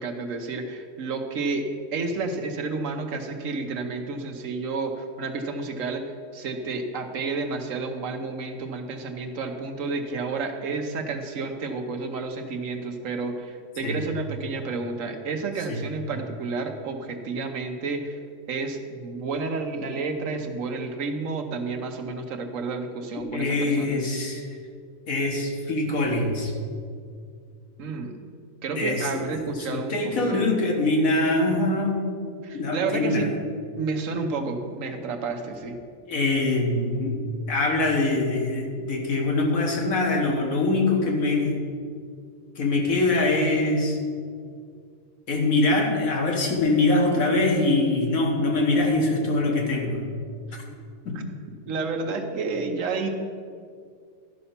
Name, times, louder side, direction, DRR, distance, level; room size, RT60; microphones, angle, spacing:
voice 1, 0.0-6.0 6.3-18.2 18.5-24.0 27.8-28.1 28.6-30.5 32.4-33.3 33.8-35.8 51.6-53.1, right 4 dB, 70° right, 5 dB, 1.2 m, -30 dB
voice 2, 23.3-24.5 25.1-26.5 28.8-29.3 29.6-32.0 32.5-33.2 36.1-37.2 37.5-41.6 42.6-44.0 45.3-50.1 51.1-51.2, left 2 dB, 80° left, 0 dB, 1.8 m, -23 dB
12.0 x 5.5 x 5.7 m, 2.2 s
omnidirectional pair, 1.4 m